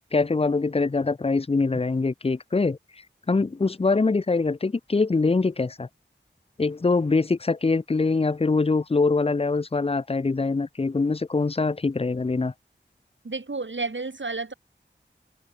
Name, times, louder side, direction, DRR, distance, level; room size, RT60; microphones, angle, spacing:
voice 1, 0.1-2.8 3.3-5.9 6.6-12.5, left 3 dB, 30° left, 0.4 m, -23 dB
voice 2, 13.2-14.5, right 3 dB, 75° right, 1.7 m, -31 dB
wide cardioid pair, 45°, 20 cm